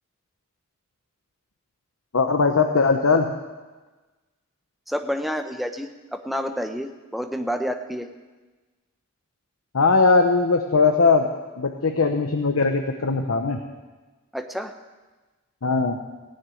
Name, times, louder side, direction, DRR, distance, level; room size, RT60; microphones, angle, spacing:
voice 1, 2.1-3.3 9.7-11.3 11.6-13.6 15.6-16.0, left 4 dB, 85° left, 5 dB, 0.9 m, -20 dB
voice 2, 4.9-8.1 14.3-14.7, equal, ahead, 6 dB, 0.7 m, -29 dB
17.5 x 6.7 x 9.1 m, 1.3 s
head